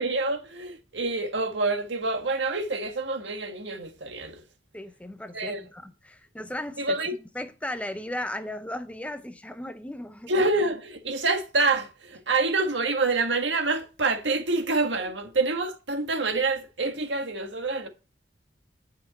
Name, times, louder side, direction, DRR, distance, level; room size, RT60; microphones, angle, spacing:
voice 1, 0.0-4.4 5.3-5.6 6.8-7.1 10.3-17.9, right 3 dB, 85° right, 1.7 m, -27 dB
voice 2, 4.7-7.0 7.3-10.3, left 1 dB, 10° left, 0.7 m, -36 dB
10.0 x 6.0 x 4.0 m
head